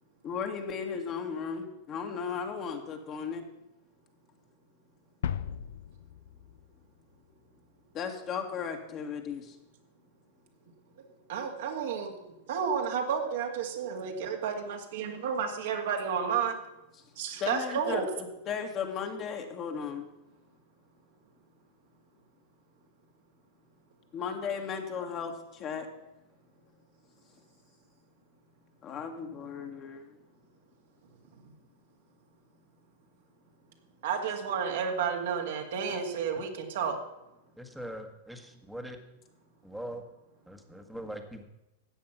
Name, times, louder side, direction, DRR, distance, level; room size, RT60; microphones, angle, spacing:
voice 1, 0.2-3.5 7.9-9.6 17.4-20.1 24.1-25.9 28.8-30.1, left 6 dB, 35° left, 4 dB, 2.2 m, -35 dB
sound 1, 5.2-7.3, left 8 dB, 70° left, 0.6 m, -37 dB
voice 2, 11.3-16.6 17.2-18.1 34.0-37.0, right 7 dB, 65° right, 2 dB, 2.3 m, -31 dB
voice 3, 37.6-39.0 39.6-40.0 40.5-41.4, equal, ahead, 5 dB, 1.6 m, -41 dB
13.5 x 8.6 x 5.9 m, 0.92 s
hypercardioid pair, 100°, 0 cm